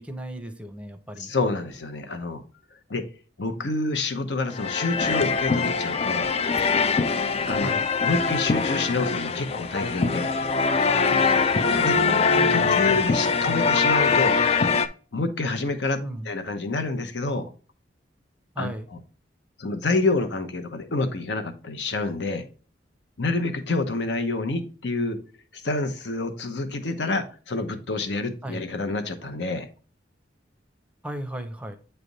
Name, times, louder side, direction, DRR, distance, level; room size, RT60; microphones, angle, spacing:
voice 1, 0.0-1.3 7.6-7.9 11.9-13.0 16.0-16.3 18.6-18.9 28.4-28.6 31.0-31.8, right 1 dB, 5° right, 0.6 m, -35 dB
voice 2, 1.2-2.4 2.9-3.1 3.4-6.3 7.5-7.7 8.0-10.3 11.8-12.0 12.5-14.4 15.1-17.5 18.6-19.0 19.6-22.4 23.2-25.2 25.5-29.7, left 3 dB, 70° left, 0.9 m, -28 dB
sound 1, 4.5-14.9, left 5 dB, 35° left, 0.4 m, -23 dB
8.1 x 3.4 x 4.0 m
head